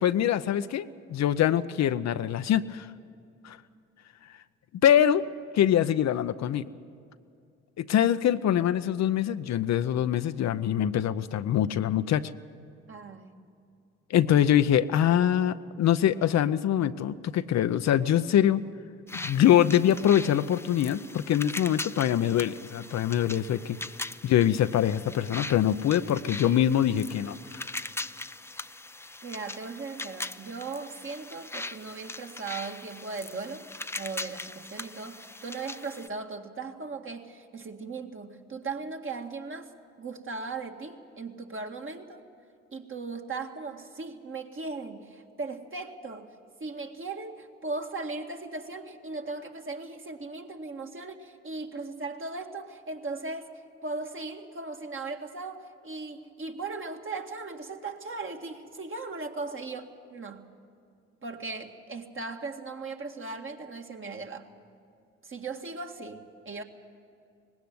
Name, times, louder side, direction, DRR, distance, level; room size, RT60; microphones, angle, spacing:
voice 1, 0.0-2.9 3.4-3.6 4.8-5.2 5.5-6.7 7.8-12.3 14.1-18.6 19.1-23.8 24.2-27.6, left 10 dB, 60° left, 12 dB, 0.7 m, -24 dB
voice 2, 12.9-13.3 29.2-33.7 34.0-39.7 40.0-42.2 42.7-46.3 46.6-53.5 53.8-60.5 61.2-64.5 65.2-66.6, right 3 dB, 40° right, 3 dB, 2.0 m, -38 dB
sound 1, 19.1-36.1, left 2 dB, 10° left, 0.6 m, -40 dB
19.0 x 16.5 x 9.5 m, 2.5 s
supercardioid pair, 55°, 30 cm